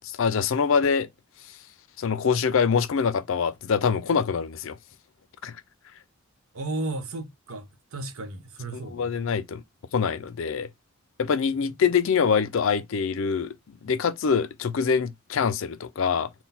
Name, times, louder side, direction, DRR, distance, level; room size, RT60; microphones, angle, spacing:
voice 1, 0.0-1.1 2.0-4.8 5.4-5.6 8.9-9.6 9.9-10.7 11.2-16.3, left 6 dB, 65° left, 0.4 m, -24 dB
voice 2, 6.5-9.1 11.5-11.7, right 2 dB, 85° right, 0.9 m, -34 dB
3.9 x 2.2 x 4.1 m
head